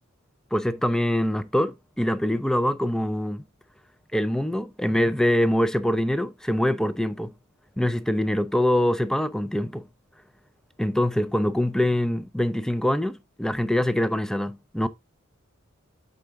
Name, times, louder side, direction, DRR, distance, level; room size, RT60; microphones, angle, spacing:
voice 1, 0.5-3.4 4.1-7.3 7.8-9.8 10.8-14.9, left 1 dB, 5° left, 0.4 m, -24 dB
8.5 x 3.9 x 3.5 m
head